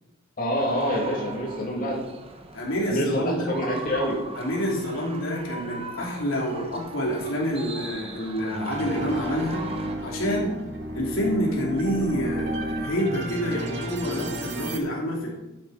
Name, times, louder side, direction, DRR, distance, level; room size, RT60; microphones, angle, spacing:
voice 1, 0.4-2.0 2.9-4.2, equal, 45° left, -3 dB, 2.6 m, -26 dB
sound 1, 0.6-9.9, right 3 dB, 30° right, 1.1 m, -39 dB
voice 2, 2.5-3.5 4.4-9.7 10.0-10.5 10.9-15.3, equal, 80° left, -3 dB, 3.0 m, -28 dB
sound 2, 8.7-14.8, right 1 dB, 60° right, 1.8 m, -32 dB
11.5 x 8.9 x 4.2 m, 0.99 s
head